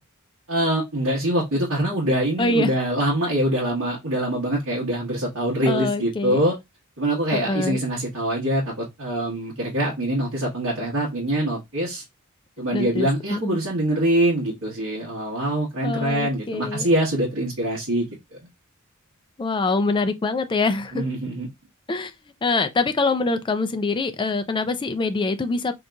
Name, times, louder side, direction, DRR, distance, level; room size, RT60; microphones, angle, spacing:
voice 1, 0.5-6.5 7.0-12.0 12.6-18.1 20.9-21.5, right 1 dB, 75° right, 1.2 m, -24 dB
voice 2, 2.4-2.7 5.7-6.4 7.3-7.8 12.7-13.6 15.8-16.9 19.4-21.0 21.9-22.1 22.4-25.7, left 3 dB, 25° left, 0.4 m, -24 dB
3.9 x 2.9 x 2.3 m
head